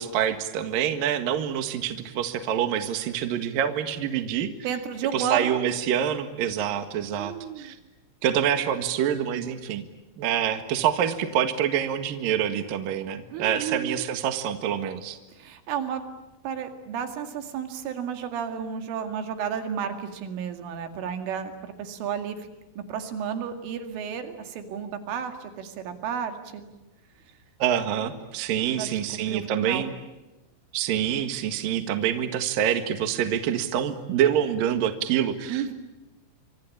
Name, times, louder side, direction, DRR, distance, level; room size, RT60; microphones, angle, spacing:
voice 1, 0.0-4.5 5.1-7.8 8.2-9.8 10.2-15.2 27.6-29.9 30.7-35.7, right 9 dB, 60° right, 8 dB, 2.8 m, -26 dB
voice 2, 4.6-5.6 7.2-7.7 13.3-14.1 15.3-16.0 16.4-22.4 22.8-26.6 28.8-29.8 35.5-35.7, right 7 dB, 80° right, 6 dB, 4.7 m, -32 dB
27.5 x 24.5 x 8.7 m, 1.1 s
omnidirectional pair, 5.6 m